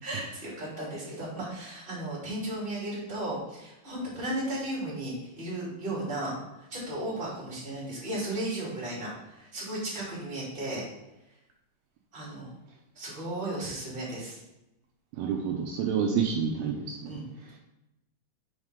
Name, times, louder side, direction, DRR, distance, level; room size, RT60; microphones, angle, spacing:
voice 1, 0.0-6.3 6.7-10.8 12.1-12.5 12.9-14.4 17.0-17.2, right 1 dB, 15° right, -6 dB, 2.4 m, -35 dB
voice 2, 15.2-17.1, right 7 dB, 85° right, 0 dB, 2.2 m, -28 dB
6.4 x 4.9 x 5.2 m, 0.93 s
omnidirectional pair, 4.9 m